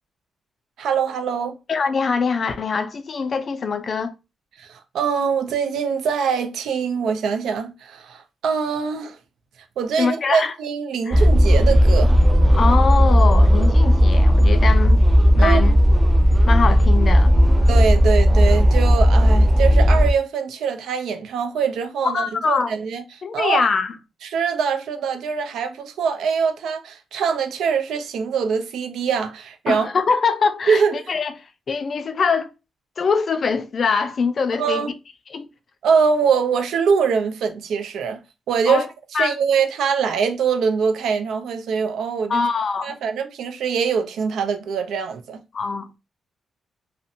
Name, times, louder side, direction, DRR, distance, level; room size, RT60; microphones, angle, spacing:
voice 1, 0.8-1.6 4.6-9.2 9.8-12.1 15.4-15.6 17.7-23.0 23.3-23.6 24.2-29.9 30.7-30.9 34.6-34.9 35.8-38.2 38.5-38.9 39.2-42.4 42.8-45.4, right 6 dB, 85° right, 0.4 m, -23 dB
voice 2, 1.7-4.1 10.0-10.5 11.1-11.2 12.5-15.0 15.4-15.7 16.5-17.4 22.0-22.7 23.2-23.9 29.7-31.3 31.7-32.5 33.0-34.8 35.3-35.5 38.7-38.9 39.1-39.3 42.3-43.0 45.5-46.0, left 5 dB, 50° left, 0.4 m, -23 dB
sound 1, 11.1-20.1, equal, 20° right, 0.4 m, -14 dB
2.5 x 2.0 x 2.7 m
cardioid pair, 85°, 0 cm